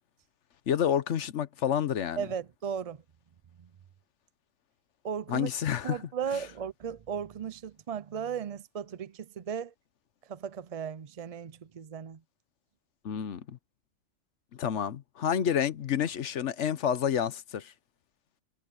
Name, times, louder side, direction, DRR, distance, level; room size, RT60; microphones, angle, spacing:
voice 1, 0.7-2.3 5.3-6.0 13.0-13.6 14.6-17.7, left 9 dB, 75° left, 1.2 m, -29 dB
voice 2, 2.2-3.0 5.0-5.5 5.8-9.7 10.3-12.2, right 7 dB, 50° right, 0.4 m, -36 dB
omnidirectional pair, 1.2 m